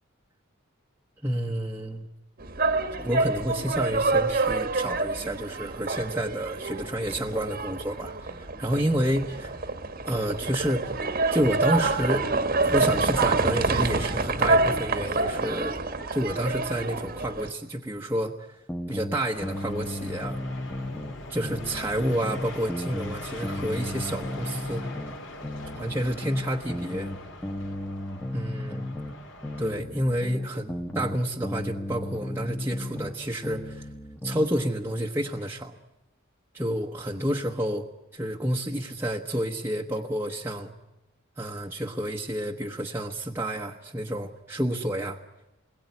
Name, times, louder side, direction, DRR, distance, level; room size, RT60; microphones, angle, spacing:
voice 1, 1.2-2.1 3.0-9.5 10.1-10.9 11.3-12.3 12.6-15.8 16.1-18.3 18.9-20.4 21.3-24.8 25.7-27.1 28.3-28.8 29.6-33.9 34.2-35.8 36.5-37.8 38.1-40.7 41.4-45.2, equal, 10° right, -1 dB, 1.1 m, -29 dB
sound 1, 2.4-17.5, right 3 dB, 45° right, 1.4 m, -27 dB
sound 2, 18.7-21.2 21.4-25.2 25.4-29.2 29.4-33.2 33.4-34.5, left 1 dB, 10° left, 1.2 m, -35 dB
sound 3, 19.3-29.7, left 1 dB, 65° left, 3.5 m, -41 dB
27.5 x 21.5 x 9.6 m, 0.98 s
head